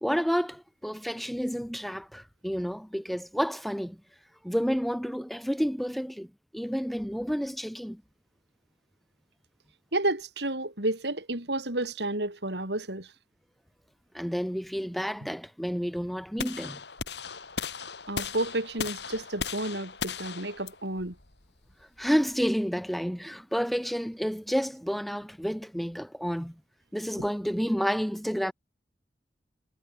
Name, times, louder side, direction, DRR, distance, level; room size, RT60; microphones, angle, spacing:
voice 1, 0.0-4.0 4.4-6.3 6.5-8.0 14.1-16.8 22.0-26.5 26.9-28.5, equal, ahead, 1.6 m, -30 dB
voice 2, 9.9-13.1 18.1-21.1, right 2 dB, 75° right, 4.9 m, -31 dB
sound 1, 16.4-22.5, left 5 dB, 75° left, 4.5 m, -37 dB
head